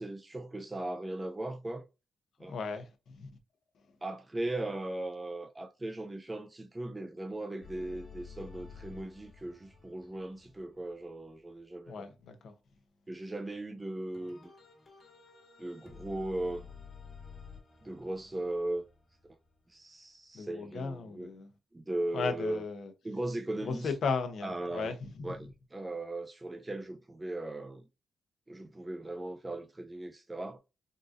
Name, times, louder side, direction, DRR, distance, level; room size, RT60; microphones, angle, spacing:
voice 1, 0.0-1.8 2.4-2.5 4.0-12.1 13.1-14.5 15.6-16.7 17.8-18.8 19.7-21.3 21.7-22.6 23.0-23.9 24.4-24.9 25.2-27.8 28.5-30.6, right 1 dB, 20° right, 0.4 m, -38 dB
voice 2, 2.5-3.3 11.9-12.5 20.3-21.5 22.1-22.9 23.6-25.4, left 5 dB, 70° left, 0.7 m, -36 dB
sound 1, 7.6-11.7 14.1-19.8, left 5 dB, 50° left, 1.5 m, -52 dB
3.8 x 2.4 x 2.6 m
cardioid pair, 100°, 0 cm